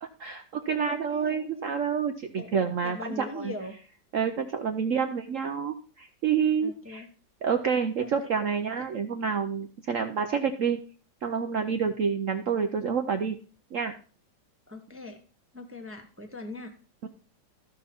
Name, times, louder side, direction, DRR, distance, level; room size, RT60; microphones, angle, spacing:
voice 1, 0.0-3.5 4.1-7.0 7.4-10.8 11.2-13.4 13.7-13.9 17.0-17.1, right 6 dB, 70° right, 6 dB, 0.7 m, -28 dB
voice 2, 0.7-1.7 2.3-2.5 2.8-3.8 6.6-7.1 8.0-8.4 14.7-15.2 15.5-16.8, left 2 dB, 10° right, 4 dB, 0.6 m, -41 dB
14.5 x 5.7 x 4.3 m, 0.37 s
omnidirectional pair, 2.1 m